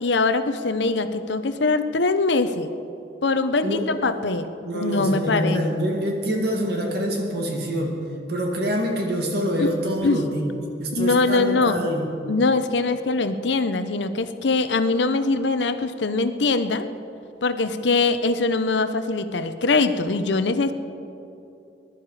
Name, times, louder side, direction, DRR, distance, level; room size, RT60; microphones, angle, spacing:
voice 1, 0.0-2.7 3.2-5.6 9.6-9.7 10.0-10.2 10.9-11.8 12.3-16.9 17.4-20.7, left 3 dB, 70° left, 10 dB, 0.8 m, -22 dB
voice 2, 4.6-8.0 8.3-10.5 10.8-12.1, equal, 60° right, 1 dB, 2.1 m, -25 dB
20.5 x 11.5 x 4.9 m, 2.7 s
head